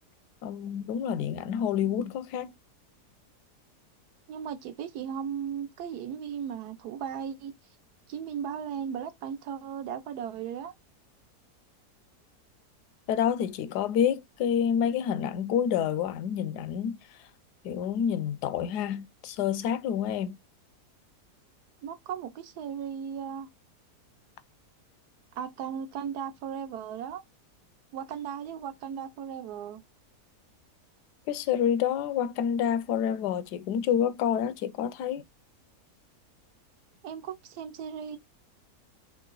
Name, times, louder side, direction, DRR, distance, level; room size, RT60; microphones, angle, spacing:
voice 1, 0.4-2.5 13.1-17.0 17.6-20.4 31.3-35.2, left 8 dB, 80° left, 1.1 m, -28 dB
voice 2, 4.3-7.5 8.1-10.7 21.8-23.5 25.4-27.2 27.9-29.8 37.0-38.2, right 8 dB, 75° right, 1.2 m, -36 dB
3.7 x 3.0 x 3.8 m
omnidirectional pair, 1.8 m